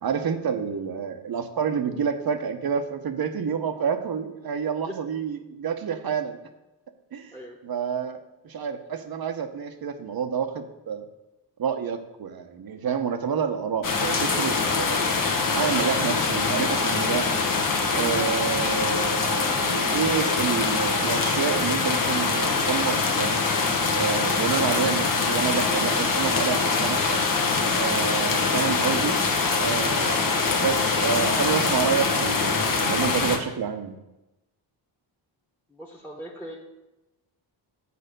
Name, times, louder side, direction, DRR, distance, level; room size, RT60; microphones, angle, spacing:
voice 1, 0.0-6.4 7.1-7.3 7.6-11.0 11.6-15.1 15.5-17.4 17.9-23.4 23.9-27.2 27.8-29.2 29.6-34.0, right 7 dB, 55° right, 8 dB, 0.9 m, -28 dB
sound 1, 13.8-33.4, left 4 dB, 45° left, 1.1 m, -24 dB
voice 2, 35.7-36.6, equal, 5° left, -1 dB, 1.3 m, -40 dB
6.9 x 4.9 x 6.6 m, 0.97 s
cardioid pair, 80°, 45 cm